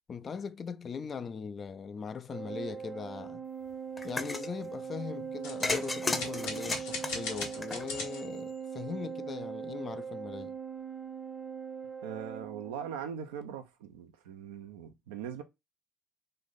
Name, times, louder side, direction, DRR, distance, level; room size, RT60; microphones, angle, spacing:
voice 1, 0.1-3.4 4.0-10.6, left 6 dB, 45° left, 0.4 m, -40 dB
Organ, 2.3-13.0, right 6 dB, 25° right, 0.7 m, -41 dB
Olla Tapa, 4.0-4.5 5.6-8.1, left 3 dB, 25° left, 0.8 m, -34 dB
sound 1, 5.4-8.7, left 4 dB, 80° left, 1.3 m, -39 dB
voice 2, 12.0-15.4, right 8 dB, 85° right, 0.6 m, -41 dB
3.2 x 2.6 x 3.9 m
hypercardioid pair, 60°, 0 cm